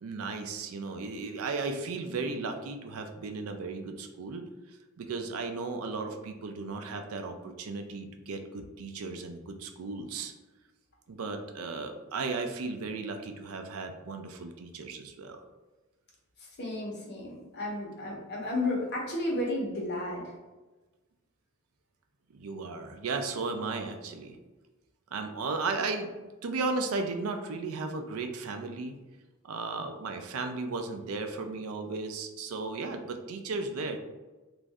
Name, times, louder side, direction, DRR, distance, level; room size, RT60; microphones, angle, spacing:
voice 1, 0.0-4.5 5.0-10.3 11.1-15.4 22.3-24.4 25.1-26.1 26.4-28.9 29.4-34.0, right 3 dB, 70° right, 6 dB, 0.4 m, -35 dB
voice 2, 16.4-20.3, left 2 dB, 50° left, -3 dB, 1.0 m, -33 dB
3.1 x 2.6 x 3.5 m, 1.2 s
head